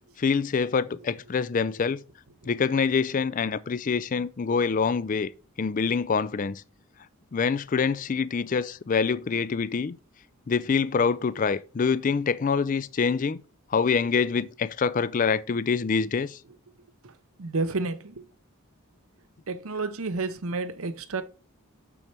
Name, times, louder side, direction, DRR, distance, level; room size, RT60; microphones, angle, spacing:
voice 1, 0.2-2.0 2.5-5.3 5.6-6.6 7.3-10.0 10.5-13.4 13.7-16.4, left 5 dB, 35° left, 0.3 m, -25 dB
voice 2, 17.4-18.2 19.5-21.2, right 3 dB, 75° right, 0.8 m, -30 dB
6.7 x 6.2 x 4.4 m
head